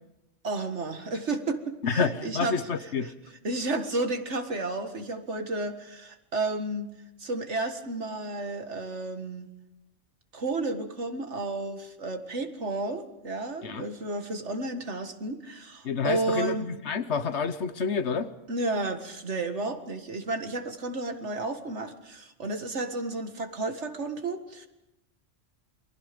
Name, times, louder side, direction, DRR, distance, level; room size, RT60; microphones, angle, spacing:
voice 1, 0.4-2.6 3.0-3.1 3.4-6.9 7.2-9.5 10.3-16.7 18.5-24.7, right 2 dB, 65° right, 6 dB, 2.1 m, -32 dB
voice 2, 1.8-3.1 13.6-13.9 15.8-18.3, left 5 dB, 65° left, 12 dB, 1.3 m, -28 dB
28.5 x 23.5 x 5.3 m, 0.91 s
omnidirectional pair, 1.3 m